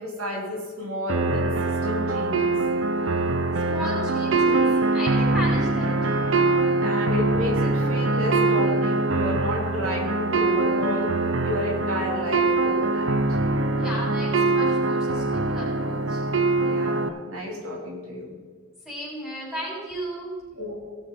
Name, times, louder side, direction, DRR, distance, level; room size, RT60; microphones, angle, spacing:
voice 1, 0.0-2.6 6.8-11.1 11.4-13.2 16.6-18.4 20.5-21.0, equal, 90° right, -2 dB, 3.1 m, -31 dB
sound 1, 1.1-17.1, right 3 dB, 60° right, 0.8 m, -23 dB
voice 2, 3.7-5.9 13.8-16.2 18.8-20.6, equal, 5° right, -7 dB, 4.5 m, -34 dB
17.5 x 6.5 x 5.4 m, 1.5 s
head